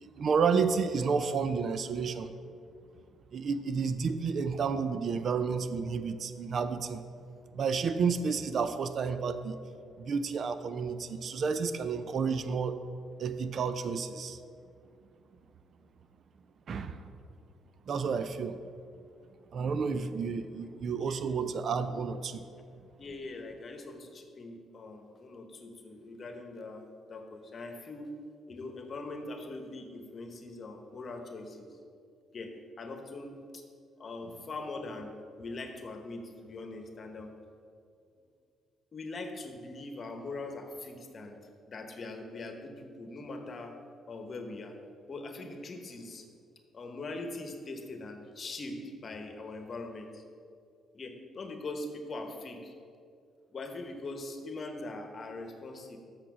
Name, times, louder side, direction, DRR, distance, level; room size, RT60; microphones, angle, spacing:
voice 1, 0.0-2.3 3.3-7.0 7.5-9.6 10.0-12.8 13.2-14.4 16.7-17.0 17.9-18.6 19.5-22.4, right 5 dB, 55° right, 11 dB, 0.4 m, -31 dB
voice 2, 20.9-21.2 23.0-28.1 28.5-31.7 32.3-33.6 34.0-37.3 38.9-41.4 41.7-43.7 44.1-44.7 45.1-46.2 46.7-50.2 50.9-52.7 53.5-56.0, left 2 dB, 45° left, 5 dB, 1.1 m, -42 dB
6.6 x 6.0 x 6.1 m, 2.4 s
cardioid pair, 90°, 0 cm